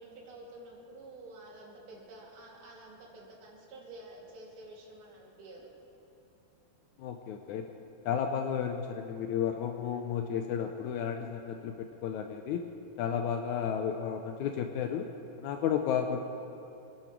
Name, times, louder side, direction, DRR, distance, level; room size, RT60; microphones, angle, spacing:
voice 1, 0.0-5.7 13.2-13.4, right 2 dB, 60° right, -5 dB, 4.1 m, -50 dB
voice 2, 7.0-7.7 8.0-12.6 13.0-15.1 15.4-16.2, left 8 dB, 85° left, 5 dB, 1.7 m, -32 dB
25.5 x 11.0 x 4.6 m, 2.8 s
omnidirectional pair, 4.3 m